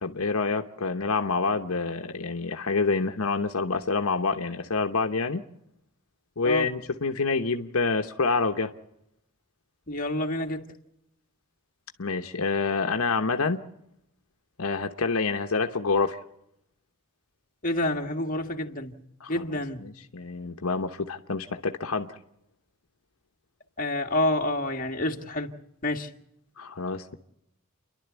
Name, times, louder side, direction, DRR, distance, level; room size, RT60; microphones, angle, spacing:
voice 1, 0.0-5.4 6.4-8.7 12.0-13.6 14.6-16.2 19.2-19.4 19.8-22.2 26.6-27.1, left 4 dB, 80° left, 6 dB, 1.1 m, -27 dB
voice 2, 9.9-10.7 17.6-19.0 19.3-19.9 23.8-25.5 25.8-26.1, left 1 dB, 40° left, 2 dB, 1.9 m, -28 dB
30.0 x 11.5 x 8.2 m, 0.80 s
head